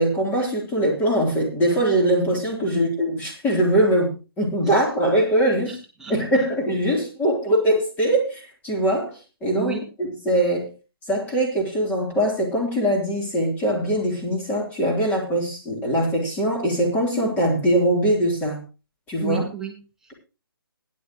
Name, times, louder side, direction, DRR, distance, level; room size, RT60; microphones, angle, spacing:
voice 1, 0.0-5.8 6.1-10.7 11.1-18.6 19.1-19.4, right 1 dB, 15° left, -1 dB, 3.8 m, -22 dB
voice 2, 5.7-6.2 9.5-9.8 19.2-19.8 20.0-20.1, right 9 dB, 5° right, -1 dB, 1.8 m, -33 dB
16.0 x 11.0 x 3.2 m, 0.30 s
figure-of-eight pair, 145°, 13 cm